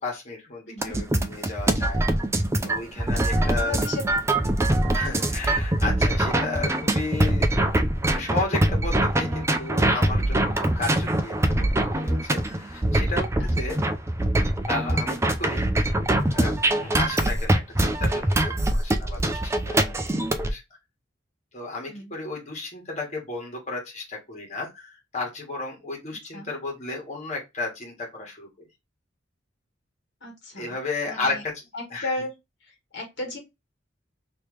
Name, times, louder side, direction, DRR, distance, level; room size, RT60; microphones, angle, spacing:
voice 1, 0.0-2.0 2.6-3.8 4.9-7.5 8.0-13.7 14.7-15.6 16.3-20.6 21.5-28.5 30.5-31.5 31.9-32.1, left 3 dB, 35° left, 0 dB, 1.6 m, -33 dB
voice 2, 0.7-1.0 3.1-4.0 10.4-10.7 13.4-13.8 21.9-22.1 26.3-26.5 30.2-30.7 31.0-31.4 31.7-32.3 32.6-33.4, left 2 dB, 60° left, 1 dB, 1.5 m, -35 dB
sound 1, 0.8-20.5, right 1 dB, 15° right, 0.4 m, -23 dB
3.3 x 3.0 x 3.2 m, 0.21 s
head